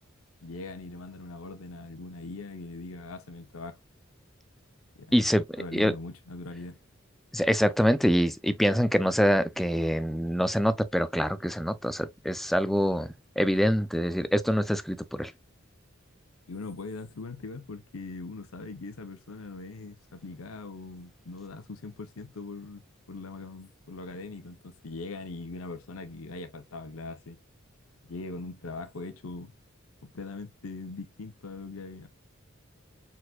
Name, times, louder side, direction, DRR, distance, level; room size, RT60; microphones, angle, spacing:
voice 1, 0.4-3.8 5.0-5.2 5.6-6.8 16.5-22.8 23.1-27.4 28.1-29.5 30.1-32.1, left 3 dB, 80° left, 0.8 m, -41 dB
voice 2, 5.1-5.4 5.7-5.9 7.3-15.3, equal, ahead, 0.3 m, -25 dB
4.3 x 4.2 x 2.2 m
head